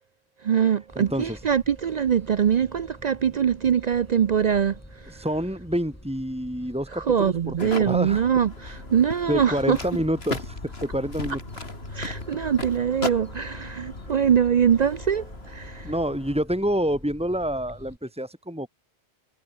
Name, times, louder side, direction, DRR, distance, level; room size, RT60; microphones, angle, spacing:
voice 1, 0.4-5.2 6.9-9.8 11.9-15.9, right 8 dB, 55° right, 0.5 m, -23 dB
sound 1, 0.9-18.0, equal, 15° left, 5.2 m, -47 dB
voice 2, 1.0-1.4 5.1-8.2 8.7-8.8 9.3-11.4 15.8-18.7, equal, 5° right, 3.8 m, -28 dB
sound 2, 7.6-16.4, left 2 dB, 65° left, 3.6 m, -37 dB
omnidirectional pair, 1.1 m